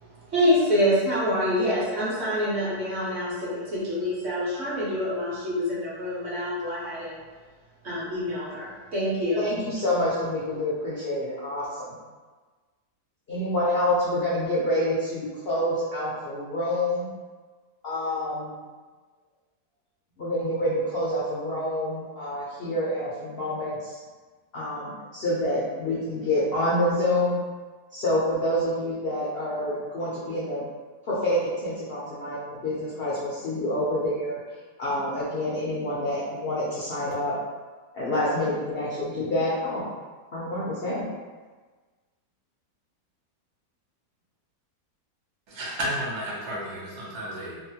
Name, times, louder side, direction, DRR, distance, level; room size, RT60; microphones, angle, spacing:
voice 1, 0.3-7.2 7.8-9.4, equal, 50° right, -7 dB, 0.9 m, -26 dB
voice 2, 9.4-11.9 13.3-17.1 17.8-18.5 20.2-24.0 24.5-27.4 27.9-30.7 31.0-34.4 34.8-37.4 37.9-39.8 40.3-41.1, left 1 dB, 75° left, -8 dB, 0.5 m, -27 dB
voice 3, 45.5-47.6, equal, 70° right, -5 dB, 1.3 m, -32 dB
3.0 x 2.1 x 2.7 m, 1.4 s
omnidirectional pair, 1.8 m